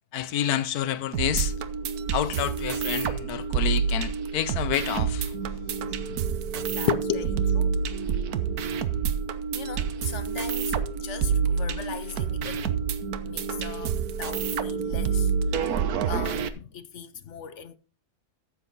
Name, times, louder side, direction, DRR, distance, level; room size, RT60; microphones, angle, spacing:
voice 1, 0.1-1.5 2.1-5.3 5.9-6.0 6.9-7.3, left 11 dB, 70° left, 1.3 m, -28 dB
sound 1, 1.1-16.5, right 6 dB, 70° right, 1.4 m, -28 dB
voice 2, 6.1-7.3 7.5-7.8 8.7-8.8 9.5-12.8 13.2-17.8, left 7 dB, 55° left, 1.0 m, -40 dB
14.0 x 7.6 x 4.0 m
omnidirectional pair, 1.7 m